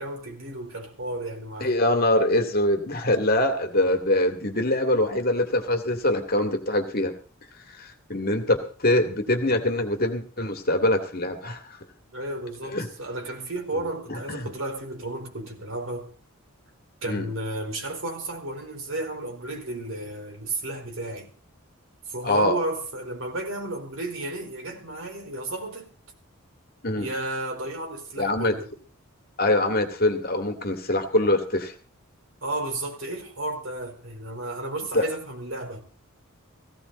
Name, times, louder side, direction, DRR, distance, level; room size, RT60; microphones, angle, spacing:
voice 1, 0.0-1.8 12.1-16.1 17.0-21.3 22.1-25.9 27.0-28.7 32.4-35.8, right 2 dB, 65° right, 4.5 m, -33 dB
voice 2, 1.6-7.2 7.7-11.8 12.7-12.9 14.1-14.5 17.0-17.3 22.2-22.6 26.8-27.1 28.2-28.6 29.4-31.7 34.9-35.1, left 1 dB, 45° left, 2.3 m, -24 dB
17.0 x 16.5 x 4.2 m
head